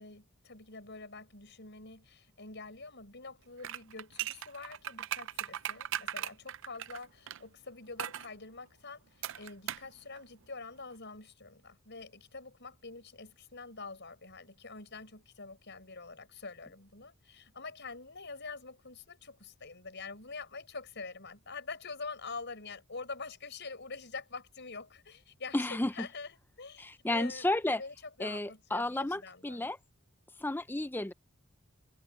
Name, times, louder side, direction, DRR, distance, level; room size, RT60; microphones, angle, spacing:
voice 1, 0.0-29.7, left 4 dB, 55° left, 6.5 m, -46 dB
sound 1, 3.6-7.4 8.0-8.3 9.2-9.9 10.2-10.3, right 11 dB, 60° right, 0.5 m, -38 dB
voice 2, 25.5-26.1 26.8-27.8 28.2-29.8 30.4-31.1, left 2 dB, 10° left, 0.5 m, -32 dB
head